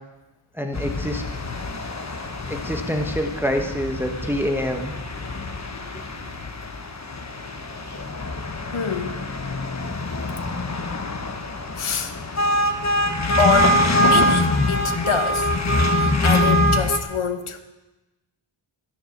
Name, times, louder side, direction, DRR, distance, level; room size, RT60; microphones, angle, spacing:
voice 1, 0.6-1.2 2.5-4.9 5.9-6.0, equal, 5° right, 1.2 m, -26 dB
sound 1, 0.7-17.0, left 1 dB, 35° left, 1.2 m, -24 dB
voice 2, 7.1-7.7 8.7-9.2 11.8-12.1 13.4-15.5 15.9-17.6, left 7 dB, 80° left, 1.3 m, -26 dB
13.0 x 10.5 x 7.2 m
wide cardioid pair, 95°, 49 cm